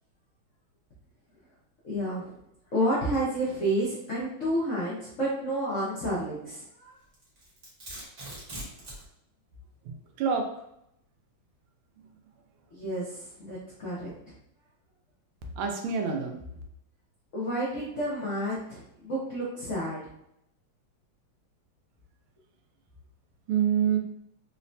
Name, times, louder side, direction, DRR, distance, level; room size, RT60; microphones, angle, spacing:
voice 1, 1.8-2.4 2.7-6.9 12.7-14.3 17.3-20.1, right 1 dB, 75° left, -7 dB, 0.7 m, -30 dB
Domestic sounds home sounds, 7.1-9.1, right 1 dB, 45° right, 1.0 m, -41 dB
voice 2, 9.8-10.5 15.6-16.6 23.5-24.0, right 7 dB, 85° right, 2 dB, 1.5 m, -27 dB
3.9 x 2.1 x 2.6 m, 0.78 s
omnidirectional pair, 2.3 m